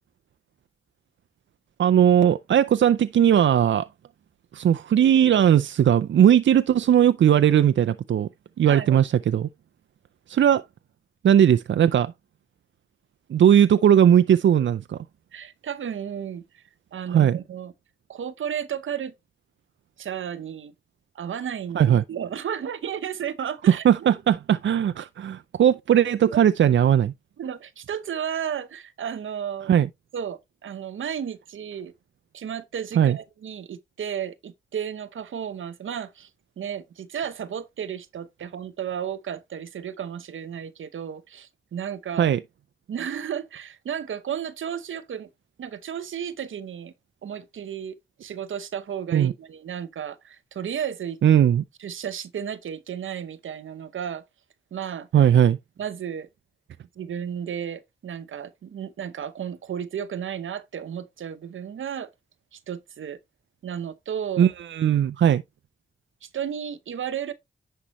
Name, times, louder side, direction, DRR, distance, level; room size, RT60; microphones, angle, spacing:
voice 1, 1.8-3.9 4.5-8.3 8.6-9.5 10.3-10.6 11.2-12.1 13.3-15.0 17.1-17.4 21.7-22.0 23.7-27.1 29.7-29.9 33.0-33.2 42.2-42.4 49.1-49.3 51.2-51.6 55.1-55.6 64.4-65.4, right 9 dB, 70° right, 0.4 m, -18 dB
voice 2, 8.7-9.1 15.3-16.6 16.9-17.7 18.1-19.1 20.0-20.7 21.1-23.8 27.4-29.8 30.1-31.9 32.3-36.3 36.6-42.3 42.9-45.3 45.6-46.9 47.2-47.9 48.2-51.2 51.8-54.2 54.7-55.1 55.8-56.3 57.0-62.1 62.5-63.2 63.6-64.5 66.2-67.3, right 8 dB, 90° right, 0.8 m, -33 dB
10.0 x 5.5 x 3.0 m
cardioid pair, 60°, 20 cm